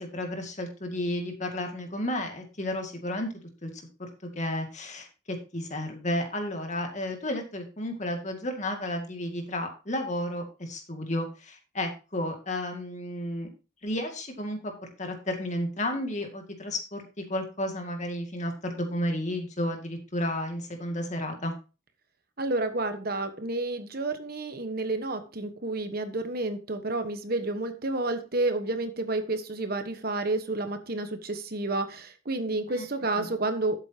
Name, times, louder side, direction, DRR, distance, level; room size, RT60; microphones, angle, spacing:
voice 1, 0.0-3.3 3.6-4.1 4.4-13.5 13.8-21.5 32.7-32.9 33.2-33.3, left 1 dB, 35° left, 4 dB, 2.2 m, -32 dB
voice 2, 22.4-33.8, right 2 dB, 50° right, 8 dB, 1.2 m, -30 dB
12.5 x 8.3 x 2.9 m, 0.31 s
head